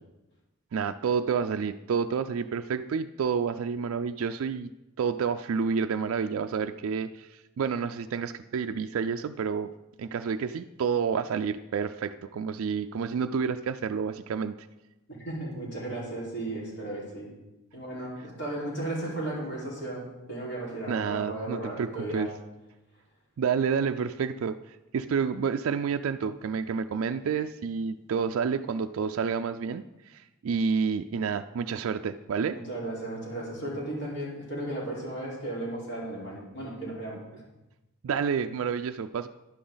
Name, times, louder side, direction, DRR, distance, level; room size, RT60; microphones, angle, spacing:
voice 1, 0.7-4.7 5.0-9.7 10.0-14.6 20.9-22.3 23.4-32.6 38.0-39.3, right 6 dB, 75° right, 7 dB, 0.3 m, -29 dB
voice 2, 15.2-17.3 17.7-22.3 32.5-37.4, right 1 dB, 55° left, -6 dB, 4.5 m, -35 dB
11.0 x 10.0 x 3.9 m, 1.0 s
head